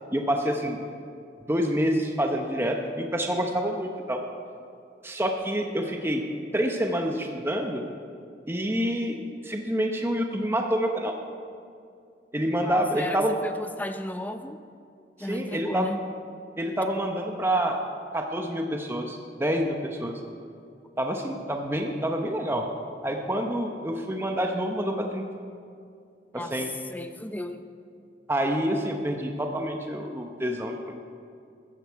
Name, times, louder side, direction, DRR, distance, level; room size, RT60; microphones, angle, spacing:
voice 1, 0.1-0.8 1.5-4.2 5.0-6.2 6.5-7.8 8.5-9.2 9.4-11.1 12.3-13.4 15.2-15.9 16.6-17.8 18.1-20.2 21.0-22.7 23.0-25.3 26.3-26.7 28.3-30.9, equal, 15° right, 3 dB, 0.9 m, -27 dB
voice 2, 12.6-13.2 13.8-14.6 15.2-16.0 26.4-26.5 26.9-27.6, left 1 dB, 10° left, 8 dB, 0.6 m, -34 dB
15.0 x 13.5 x 4.7 m, 2.4 s
head